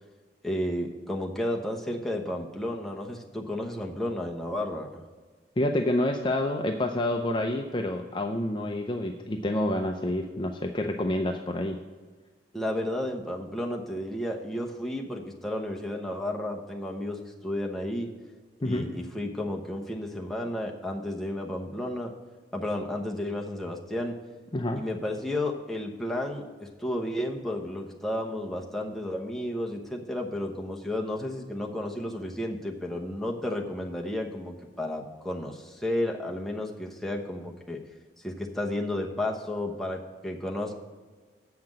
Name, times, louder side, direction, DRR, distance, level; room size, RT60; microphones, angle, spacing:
voice 1, 0.4-5.0 12.5-18.1 18.6-22.1 22.5-24.2 24.8-37.8 38.2-40.7, left 1 dB, ahead, -1 dB, 0.9 m, -32 dB
voice 2, 5.6-11.8 18.6-18.9 24.5-24.8, left 1 dB, 25° left, 4 dB, 0.5 m, -28 dB
7.7 x 5.9 x 7.3 m, 1.4 s
head